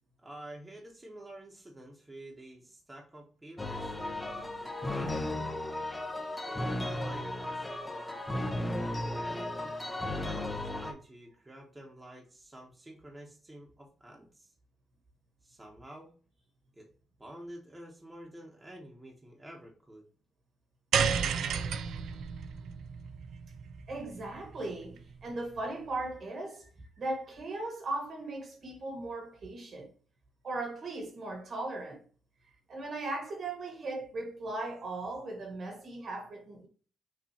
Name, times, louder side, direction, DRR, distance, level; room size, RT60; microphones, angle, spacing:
voice 1, 0.2-5.2 6.5-8.2 8.9-14.5 15.4-16.1 16.7-16.9 17.2-20.1, right 1 dB, 15° right, 1.1 m, -49 dB
sound 1, 3.6-10.9, left 1 dB, 15° left, 0.8 m, -35 dB
sound 2, 20.9-25.3, right 7 dB, 70° right, 0.4 m, -33 dB
voice 2, 23.9-26.7 27.0-29.9 30.4-32.0 32.7-36.7, right 2 dB, 50° right, 1.6 m, -38 dB
6.2 x 2.7 x 2.9 m
cardioid pair, 90°, 0 cm